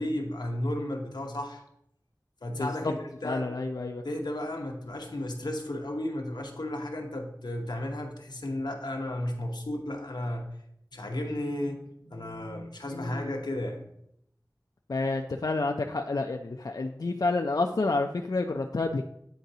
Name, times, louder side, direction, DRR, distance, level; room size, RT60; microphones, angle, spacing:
voice 1, 0.0-1.6 2.4-3.0 3.2-3.5 4.0-10.5 10.9-13.9, left 1 dB, 85° left, 2 dB, 0.9 m, -33 dB
voice 2, 2.6-2.9 3.2-4.0 12.9-13.3 14.9-19.0, left 3 dB, 60° left, 3 dB, 0.4 m, -29 dB
9.2 x 3.9 x 2.7 m, 0.74 s
wide cardioid pair, 45°, 7 cm